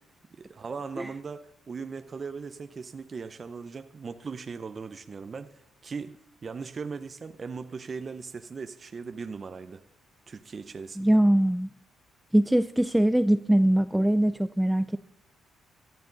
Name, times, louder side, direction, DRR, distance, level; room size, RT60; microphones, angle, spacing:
voice 1, 0.4-9.8 10.3-11.2, right 5 dB, 40° right, 9 dB, 0.7 m, -39 dB
voice 2, 11.0-11.7 12.3-15.0, right 1 dB, 5° right, 12 dB, 0.4 m, -22 dB
18.0 x 12.0 x 4.0 m, 0.80 s
cardioid pair, 90°, 0 cm